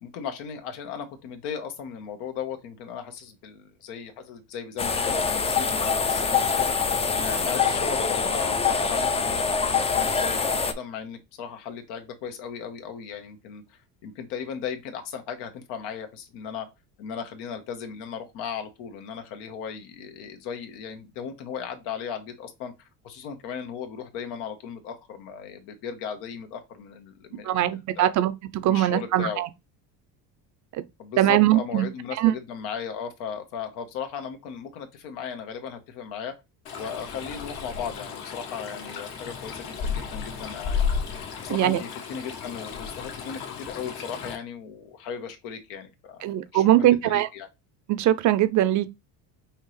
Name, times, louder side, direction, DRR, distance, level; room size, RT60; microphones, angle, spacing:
voice 1, 0.0-16.7 17.0-27.5 28.0-28.1 28.6-29.4 31.0-36.3 36.7-40.8 41.4-46.3 46.5-47.5, left 7 dB, 85° left, 1.2 m, -36 dB
Thai farm with cows, 4.8-10.7, left 5 dB, 15° left, 0.4 m, -24 dB
voice 2, 27.4-29.5 30.7-30.8 31.2-31.9 32.2-32.3 41.5-41.8 46.2-47.3 47.9-48.9, right 13 dB, 50° right, 0.5 m, -21 dB
Stream, 36.7-44.4, left 6 dB, 65° left, 1.6 m, -33 dB
5.6 x 2.9 x 3.2 m
cardioid pair, 130°, 39 cm